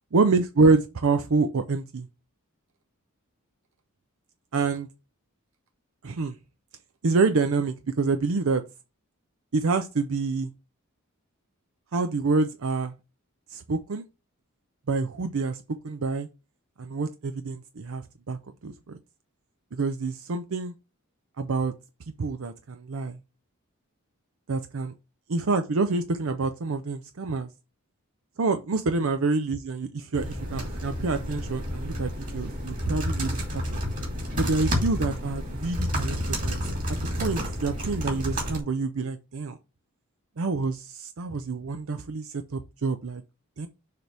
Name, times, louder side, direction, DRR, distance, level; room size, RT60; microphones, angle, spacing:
voice 1, 0.1-2.1 4.5-4.9 6.0-6.4 7.0-8.6 9.5-10.5 11.9-12.9 13.5-14.0 14.9-16.3 16.8-19.0 19.7-20.7 21.4-21.7 22.2-23.2 24.5-24.9 25.3-27.5 28.4-33.8 34.4-36.5 37.2-39.6 40.4-43.2 43.6-43.7, right 4 dB, 70° right, 0.6 m, -27 dB
sound 1, 30.1-38.6, equal, 40° right, 2.5 m, -30 dB
6.6 x 3.4 x 6.0 m
head